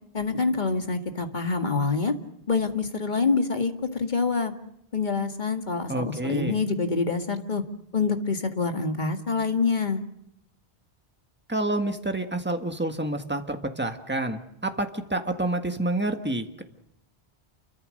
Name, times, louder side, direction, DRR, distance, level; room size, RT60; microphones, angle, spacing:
voice 1, 0.1-2.1 2.5-4.5 4.9-7.6 7.9-10.0, left 4 dB, 45° left, 6 dB, 2.1 m, -26 dB
voice 2, 5.9-6.6 11.5-16.6, right 2 dB, 10° right, 6 dB, 1.7 m, -28 dB
29.0 x 24.0 x 6.5 m, 0.76 s
omnidirectional pair, 1.1 m